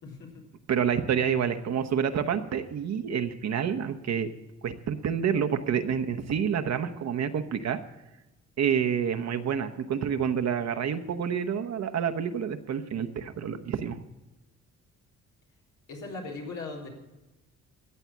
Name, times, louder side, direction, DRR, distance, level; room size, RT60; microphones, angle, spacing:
voice 1, 0.0-0.4 15.9-16.9, left 3 dB, 85° left, -1 dB, 3.6 m, -38 dB
voice 2, 0.7-4.3 4.6-7.8 8.6-14.0, right 7 dB, 60° right, 7 dB, 1.0 m, -28 dB
14.0 x 7.9 x 7.2 m, 1.0 s
cardioid pair, 90°, 30 cm